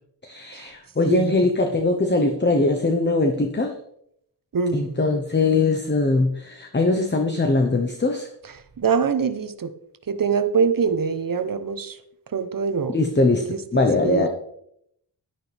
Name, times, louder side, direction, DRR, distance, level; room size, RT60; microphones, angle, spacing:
voice 1, 0.2-3.7 4.7-8.3 12.9-14.3, left 2 dB, 25° left, 4 dB, 1.0 m, -21 dB
voice 2, 4.5-4.9 8.8-9.7 10.1-12.0 12.3-13.0 13.7-14.3, right 5 dB, 50° right, 10 dB, 1.0 m, -24 dB
11.0 x 10.5 x 3.5 m, 0.73 s
wide cardioid pair, 105°, 42 cm